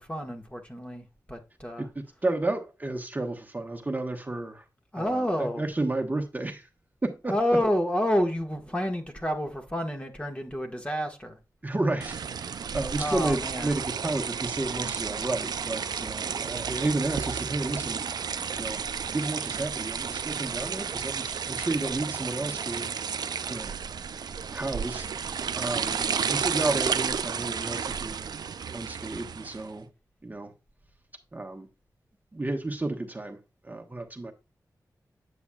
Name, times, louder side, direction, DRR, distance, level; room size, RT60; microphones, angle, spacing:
voice 1, 0.0-1.8 4.9-5.6 7.3-11.4 12.9-13.7, equal, 20° left, 1.5 m, -29 dB
voice 2, 1.8-4.7 4.9-6.7 7.0-7.3 11.6-18.0 18.6-18.8 19.1-22.9 23.5-23.7 24.5-26.0 26.3-28.2 28.7-29.9 30.2-30.5 31.3-31.7 32.3-34.3, right 2 dB, 25° right, 1.1 m, -32 dB
sound 1, 12.0-29.7, right 6 dB, 85° right, 0.4 m, -32 dB
8.4 x 6.9 x 2.3 m
wide cardioid pair, 90°, 7 cm